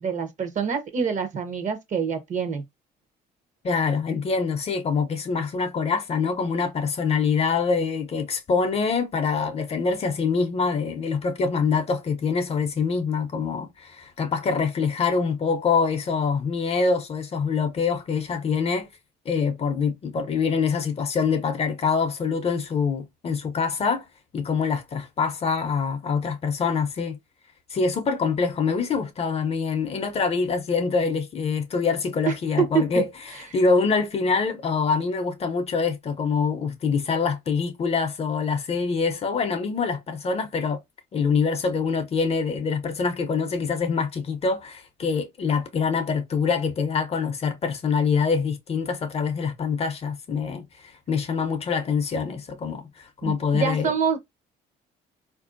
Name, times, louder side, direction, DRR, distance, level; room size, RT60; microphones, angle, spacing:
voice 1, 0.0-2.6 32.3-33.0 53.2-54.2, right 6 dB, 40° right, 0.8 m, -26 dB
voice 2, 3.6-18.9 19.3-24.1 24.3-27.2 27.7-40.8 41.1-53.9, left 5 dB, 35° left, 0.6 m, -25 dB
4.2 x 2.6 x 2.5 m
cardioid pair, 135°, 18 cm